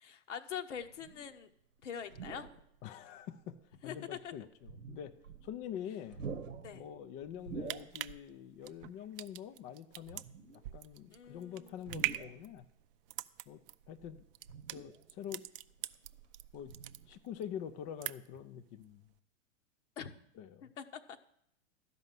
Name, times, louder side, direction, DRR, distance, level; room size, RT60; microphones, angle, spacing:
voice 1, 0.0-1.5 1.8-2.5 3.8-4.3 6.6-6.9 11.1-11.9 20.0-20.1 20.8-20.9, left 8 dB, 70° left, 8 dB, 0.9 m, -44 dB
sound 1, 0.8-1.4 2.0-2.8 3.4-3.5 4.5-5.7 6.0-8.3 8.6-8.7 10.0-10.8 11.8-12.7 13.8-15.2 15.6-17.4 17.7-17.9, right 5 dB, 90° right, 1.0 m, -48 dB
voice 2, 2.8-3.6 3.8-5.1 5.4-6.2 6.7-10.2 10.5-12.7 13.5-13.6 13.9-14.2 14.7-15.4 16.5-16.7 17.1-19.1 20.4-20.7, left 9 dB, 20° left, 9 dB, 0.3 m, -45 dB
sound 2, 7.4-16.4 16.7-17.5 17.8-18.5 18.8-18.9, right 15 dB, 50° right, 0.5 m, -41 dB
12.0 x 5.5 x 7.4 m, 0.74 s
hypercardioid pair, 110°, 37 cm